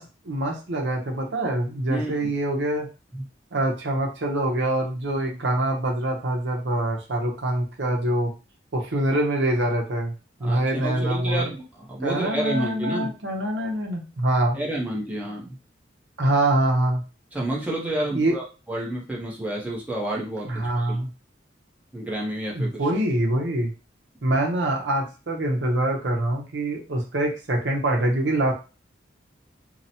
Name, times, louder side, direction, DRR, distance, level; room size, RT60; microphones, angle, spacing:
voice 1, 0.0-2.9 3.5-8.3 8.7-10.1 10.4-11.4 12.0-14.6 16.2-17.0 18.1-18.3 20.5-21.1 22.5-23.7 24.2-28.5, right 1 dB, 70° right, 1 dB, 0.7 m, -24 dB
voice 2, 1.9-2.3 3.1-3.2 10.4-13.1 14.5-15.6 17.3-20.5 20.8-21.0 21.9-22.8, right 1 dB, 10° right, -3 dB, 0.6 m, -30 dB
2.8 x 2.0 x 2.7 m, 0.32 s
head